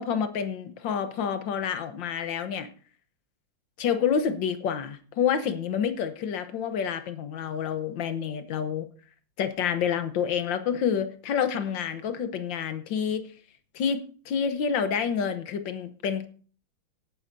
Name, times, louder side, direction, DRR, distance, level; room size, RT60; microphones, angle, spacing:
voice 1, 0.0-2.7 3.8-8.9 9.4-13.3 13.7-16.3, left 7 dB, 70° left, 10 dB, 1.6 m, -28 dB
17.5 x 9.7 x 2.7 m, 0.40 s
omnidirectional pair, 2.2 m